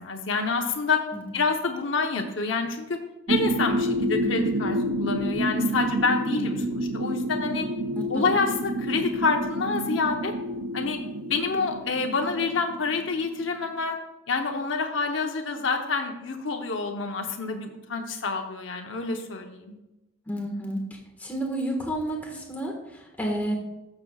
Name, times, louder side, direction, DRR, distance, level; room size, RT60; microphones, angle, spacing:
voice 1, 0.0-1.0 1.3-3.0 3.3-7.7 8.1-10.3 10.7-11.0 11.3-14.0 14.3-19.7, left 4 dB, 80° left, 3 dB, 0.8 m, -27 dB
sound 1, 3.3-13.7, right 1 dB, 65° right, 0.6 m, -29 dB
voice 2, 20.3-20.8 21.2-23.6, right 1 dB, 10° left, -1 dB, 1.5 m, -30 dB
13.5 x 6.7 x 2.4 m, 0.99 s
head